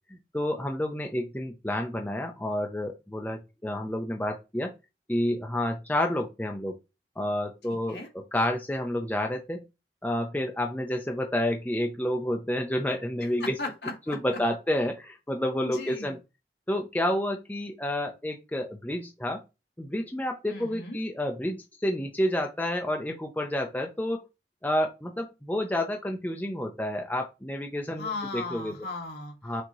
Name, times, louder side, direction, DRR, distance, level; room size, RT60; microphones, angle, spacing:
voice 1, 0.1-4.7 5.1-6.7 7.2-9.6 10.0-13.6 14.1-16.2 16.7-19.4 19.8-24.2 24.6-28.7 29.4-29.6, left 1 dB, 10° left, 3 dB, 0.5 m, -29 dB
voice 2, 13.4-14.2 15.6-16.1 20.5-21.0 28.0-29.3, left 3 dB, 65° left, 2 dB, 1.4 m, -36 dB
6.0 x 2.9 x 2.9 m, 0.26 s
head